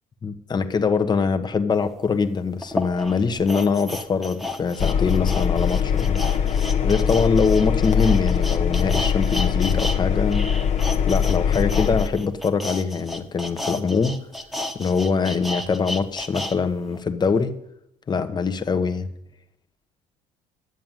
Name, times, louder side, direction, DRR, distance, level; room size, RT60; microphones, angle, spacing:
voice 1, 0.2-6.2 6.8-10.5 11.1-14.2 14.7-17.5 18.1-19.1, left 5 dB, 30° left, 8 dB, 1.2 m, -23 dB
sound 1, 1.8-1.9 2.6-10.0 10.3-16.6 16.9-17.0, left 1 dB, ahead, 1.3 m, -32 dB
Engine, 4.8-12.1, left 7 dB, 50° left, 1.2 m, -22 dB
11.0 x 7.6 x 9.1 m, 0.80 s
cardioid pair, 100°, 15 cm